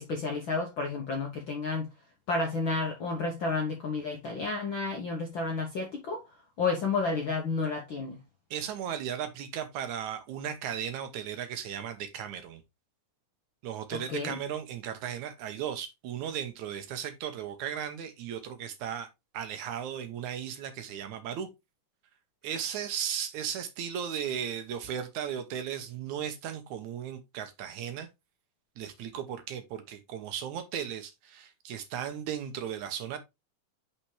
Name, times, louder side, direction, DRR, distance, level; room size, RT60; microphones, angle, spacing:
voice 1, 0.0-1.9 2.3-6.2 6.6-8.2 13.9-14.4, left 3 dB, 65° left, 1.2 m, -31 dB
voice 2, 8.5-12.6 13.6-19.1 19.3-21.5 22.4-28.1 28.8-33.2, right 9 dB, 70° right, 2.2 m, -36 dB
5.8 x 5.7 x 3.2 m
omnidirectional pair, 3.7 m